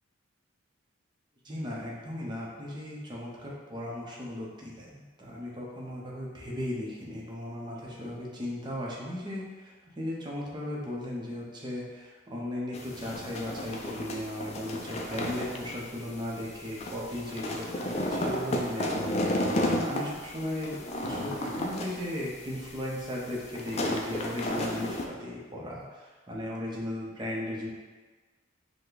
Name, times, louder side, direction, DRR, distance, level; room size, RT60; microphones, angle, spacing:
voice 1, 1.4-19.0 19.3-27.7, left 1 dB, 20° right, -4 dB, 0.8 m, -36 dB
sound 1, 12.7-25.1, left 1 dB, 35° left, 0.4 m, -33 dB
5.6 x 2.2 x 3.9 m, 1.4 s
head